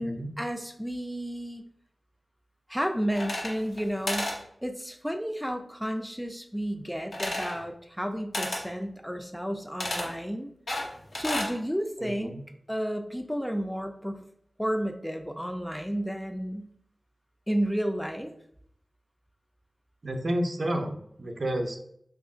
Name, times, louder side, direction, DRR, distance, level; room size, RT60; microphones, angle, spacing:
voice 1, 0.0-1.6 2.7-10.5 11.2-12.3 12.7-14.2 14.6-16.7 17.5-18.3, equal, ahead, 5 dB, 0.4 m, -32 dB
sound 1, 3.1-3.8 4.1-4.4 7.1-7.6 8.3-8.7 9.8-10.1 10.7-11.5, left 1 dB, 85° left, 0.8 m, -31 dB
voice 2, 12.0-12.4 20.0-21.8, right 1 dB, 65° right, 4 dB, 0.5 m, -31 dB
2.9 x 2.4 x 3.7 m, 0.70 s
wide cardioid pair, 60°, 0 cm